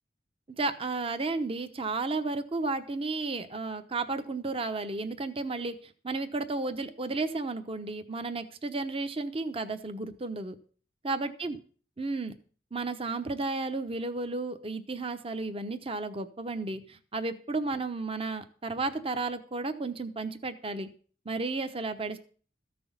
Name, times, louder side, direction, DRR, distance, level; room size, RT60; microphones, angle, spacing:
voice 1, 0.6-10.5 11.0-11.6 12.0-12.3 12.7-20.9 21.2-22.2, right 3 dB, 30° right, 9 dB, 0.9 m, -33 dB
14.0 x 6.2 x 7.1 m, 0.43 s
head